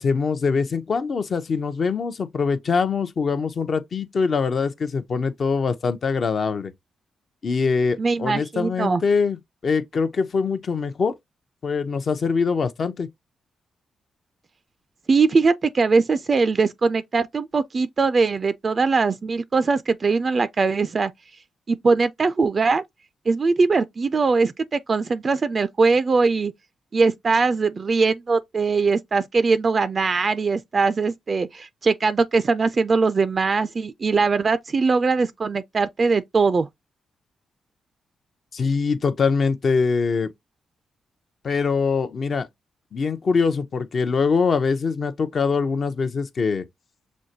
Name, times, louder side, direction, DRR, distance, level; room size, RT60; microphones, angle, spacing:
voice 1, 0.0-6.7 7.4-11.1 11.6-13.1 38.5-40.3 41.4-42.5 42.9-46.6, left 5 dB, 55° left, 0.6 m, -23 dB
voice 2, 8.0-9.0 15.1-21.1 21.7-22.8 23.3-26.5 26.9-36.7, right 4 dB, 45° right, 0.3 m, -21 dB
6.1 x 2.2 x 2.7 m
cardioid pair, 60°, 0 cm